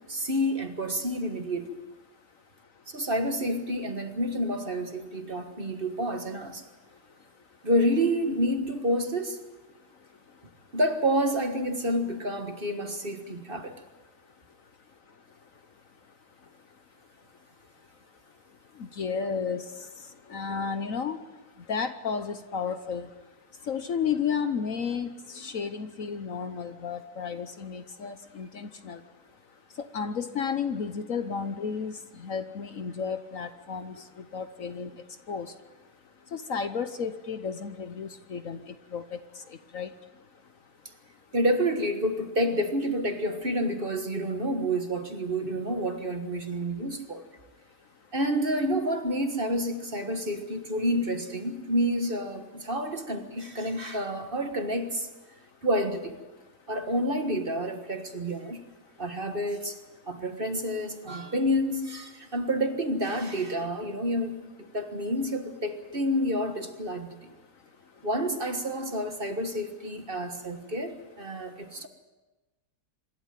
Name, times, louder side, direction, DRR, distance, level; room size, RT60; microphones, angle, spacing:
voice 1, 0.1-1.8 2.9-6.6 7.6-9.4 10.7-13.7 41.3-47.2 48.1-55.1 55.6-56.2 56.7-58.6 59.0-59.8 60.1-64.4 64.7-67.3 68.0-71.9, equal, 35° right, 6 dB, 1.6 m, -29 dB
voice 2, 19.0-19.6 20.3-21.2 21.7-23.1 23.7-29.0 29.8-31.9 32.2-34.0 34.3-34.9 35.3-35.5 36.3-38.6 38.9-39.2 39.7-39.9, left 6 dB, 55° left, 10 dB, 1.2 m, -32 dB
26.0 x 12.0 x 9.1 m, 1.2 s
omnidirectional pair, 1.8 m